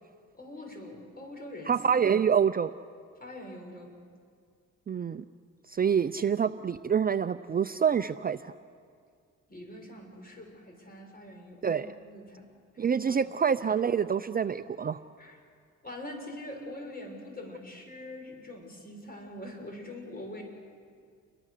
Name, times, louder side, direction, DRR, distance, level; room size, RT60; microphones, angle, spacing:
voice 1, 0.3-1.7 3.2-4.0 9.5-12.5 12.7-13.1 15.2-15.4 15.8-20.4, left 1 dB, 30° left, 2 dB, 6.6 m, -44 dB
voice 2, 1.7-2.7 4.9-5.2 5.7-8.5 11.6-11.9 12.8-15.0, right 7 dB, 30° right, 11 dB, 0.6 m, -26 dB
29.0 x 23.0 x 6.7 m, 2.1 s
cardioid pair, 90°, 30 cm